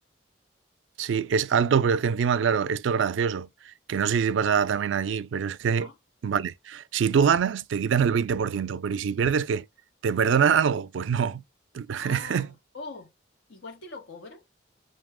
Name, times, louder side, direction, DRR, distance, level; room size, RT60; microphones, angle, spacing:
voice 1, 1.0-5.9 6.2-9.7 10.0-11.4 11.7-12.5, right 7 dB, 75° right, 0.3 m, -24 dB
voice 2, 11.9-13.1 13.5-14.4, left 3 dB, 80° left, 1.4 m, -42 dB
5.4 x 2.7 x 3.5 m
head